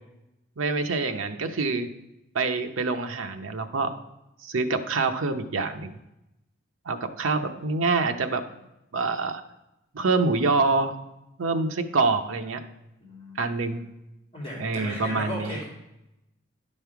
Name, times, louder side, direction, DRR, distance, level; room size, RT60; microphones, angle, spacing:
voice 1, 0.6-1.9 2.3-4.0 4.4-6.0 6.9-8.4 8.9-9.4 9.9-10.9 11.4-12.6 13.4-13.8 14.6-15.6, right 3 dB, 85° right, 7 dB, 0.7 m, -26 dB
voice 2, 13.0-13.8 14.3-15.7, left 1 dB, 30° left, -6 dB, 2.4 m, -37 dB
10.5 x 5.4 x 4.6 m, 0.91 s
head